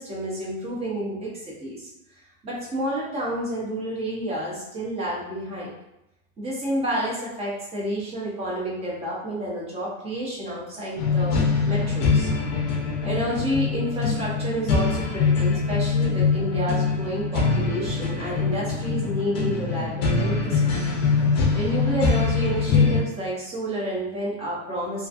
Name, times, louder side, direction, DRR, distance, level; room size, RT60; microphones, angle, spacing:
voice 1, 0.0-1.9 2.4-5.7 6.4-12.3 13.0-20.8 21.5-25.1, equal, 15° right, -5 dB, 0.5 m, -30 dB
sound 1, 11.0-23.0, left 4 dB, 50° left, 0.6 m, -23 dB
2.4 x 2.3 x 2.4 m, 0.86 s
supercardioid pair, 155°, 40 cm